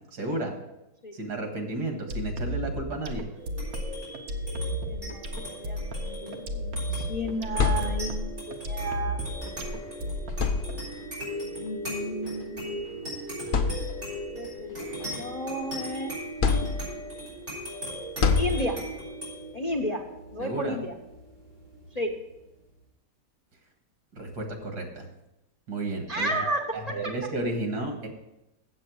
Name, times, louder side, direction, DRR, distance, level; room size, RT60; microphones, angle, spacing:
voice 1, 0.1-0.5 1.1-3.3 20.4-20.8 24.1-25.1 25.7-26.5 26.7-28.1, right 2 dB, 85° right, 3 dB, 2.2 m, -32 dB
sound 1, 2.1-10.7, equal, 65° right, 1.3 m, -33 dB
sound 2, 3.3-22.2, equal, 40° right, 4.9 m, -38 dB
voice 2, 4.8-9.2 11.4-12.9 14.3-16.1 16.4-16.7 18.4-18.8 19.5-20.0 20.3-20.9 21.9-22.1 26.1-26.6, equal, 35° left, 2 dB, 0.6 m, -33 dB
sound 3, 7.3-8.4 9.7-9.8 10.3-11.2 12.3-12.4 13.0-13.1 13.5-14.3 14.8-15.8 16.4-17.2 18.2-19.1, left 5 dB, 75° left, 0.4 m, -27 dB
7.7 x 7.7 x 6.2 m, 0.94 s
omnidirectional pair, 1.7 m